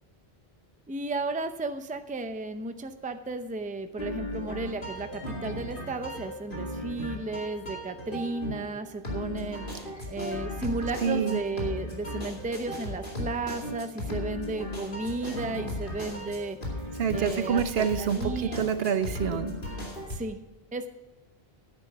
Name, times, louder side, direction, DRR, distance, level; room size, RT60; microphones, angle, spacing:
voice 1, 0.9-16.6 17.1-17.6 18.0-18.7 20.1-20.4 20.7-20.9, right 3 dB, 10° right, 8 dB, 0.5 m, -34 dB
sound 1, 4.0-20.2, left 1 dB, 55° left, 2.7 m, -36 dB
voice 2, 11.0-11.4 17.0-19.5, right 7 dB, 75° right, 11 dB, 0.9 m, -27 dB
10.5 x 9.1 x 5.8 m, 0.97 s
omnidirectional pair, 1.1 m